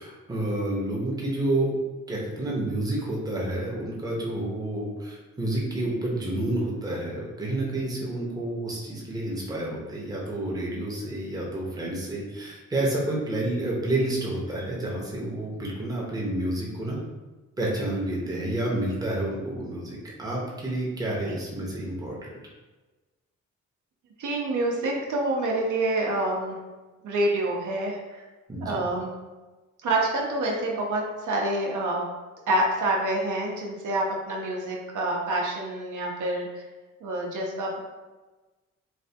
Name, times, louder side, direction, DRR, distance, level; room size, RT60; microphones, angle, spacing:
voice 1, 0.0-1.7 2.1-17.0 17.6-22.3 28.5-28.8, right 1 dB, 10° right, -4 dB, 0.5 m, -29 dB
voice 2, 24.2-26.6 27.0-28.2 28.6-29.1 29.8-32.1 32.5-36.6 37.0-37.8, right 1 dB, 75° right, -1 dB, 0.6 m, -27 dB
3.2 x 2.2 x 2.6 m, 1.2 s
wide cardioid pair, 145°, 31 cm